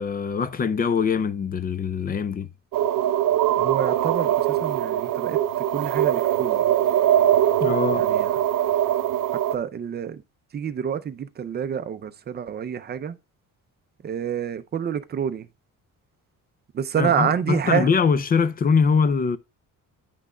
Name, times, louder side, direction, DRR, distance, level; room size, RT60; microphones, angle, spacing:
voice 1, 0.0-2.5 7.6-8.1 17.0-19.4, left 5 dB, 30° left, 0.4 m, -22 dB
sound 1, 2.7-9.6, right 11 dB, 90° right, 0.6 m, -22 dB
voice 2, 3.6-6.6 7.9-8.3 9.3-10.2 10.5-13.2 14.0-15.5 16.7-17.9, right 8 dB, 30° right, 0.5 m, -28 dB
9.1 x 6.0 x 2.2 m
cardioid pair, 160°, 32 cm